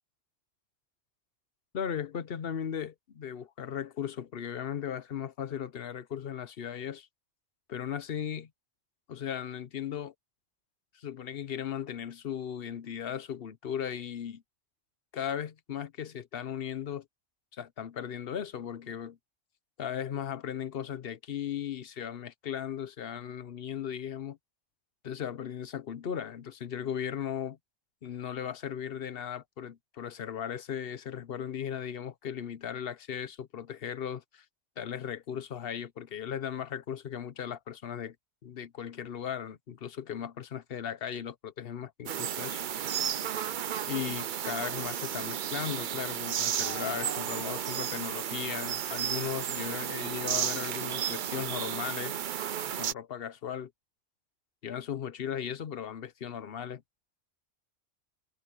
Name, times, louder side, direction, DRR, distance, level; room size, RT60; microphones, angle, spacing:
voice 1, 1.7-7.1 7.7-8.5 9.1-10.1 10.9-14.4 15.1-17.1 17.5-19.2 19.8-24.4 25.0-27.6 28.0-34.4 34.8-38.2 38.4-42.6 43.9-52.2 52.8-53.7 54.6-56.8, left 9 dB, 55° left, 1.0 m, -37 dB
sound 1, 42.1-52.9, right 9 dB, 50° right, 0.6 m, -33 dB
omnidirectional pair, 1.2 m